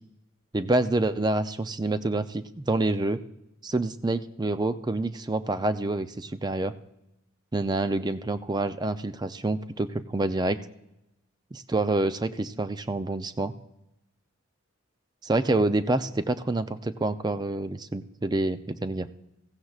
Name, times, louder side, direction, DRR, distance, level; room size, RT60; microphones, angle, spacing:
voice 1, 0.5-3.2 3.6-6.7 7.5-10.6 11.5-13.5 15.2-19.1, right 2 dB, 20° right, 11 dB, 0.4 m, -27 dB
16.0 x 15.0 x 2.4 m, 0.89 s
head